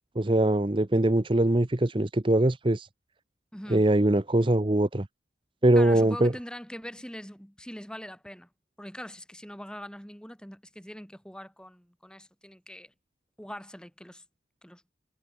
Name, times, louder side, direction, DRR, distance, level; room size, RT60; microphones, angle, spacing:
voice 1, 0.2-2.9 3.7-5.1 5.6-6.3, right 1 dB, 25° right, 0.8 m, -22 dB
voice 2, 3.5-3.9 5.8-8.5 8.8-12.9 13.4-14.2 14.6-14.8, equal, 5° left, 6.9 m, -42 dB
head